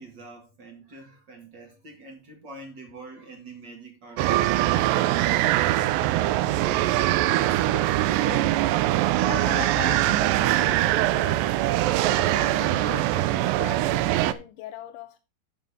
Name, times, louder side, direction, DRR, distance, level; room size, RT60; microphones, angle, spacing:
voice 1, 0.0-6.0, right 3 dB, 40° right, 1.9 m, -45 dB
sound 1, 4.2-14.3, right 15 dB, 80° right, 2.1 m, -22 dB
sound 2, 4.3-6.0, right 13 dB, 60° right, 1.4 m, -36 dB
voice 2, 7.3-8.6 9.2-11.5 12.1-15.2, left 12 dB, 80° left, 2.1 m, -40 dB
9.9 x 5.1 x 5.3 m
omnidirectional pair, 4.4 m